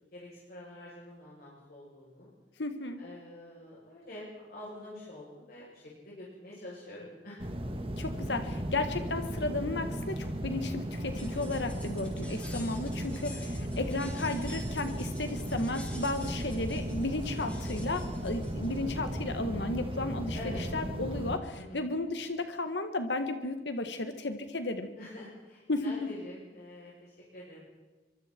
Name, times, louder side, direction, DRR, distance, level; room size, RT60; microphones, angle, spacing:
voice 1, 0.1-2.3 3.0-7.4 13.6-13.9 20.3-20.6 21.5-21.8 25.0-27.6, left 1 dB, 55° left, -6 dB, 7.9 m, -46 dB
voice 2, 2.6-3.0 8.0-24.9 25.7-26.1, left 2 dB, 75° left, 8 dB, 1.6 m, -34 dB
sound 1, 7.4-21.4, equal, 30° right, 2.0 m, -36 dB
sound 2, 11.1-18.8, left 1 dB, 5° left, 4.4 m, -50 dB
24.5 x 24.5 x 4.5 m, 1.3 s
head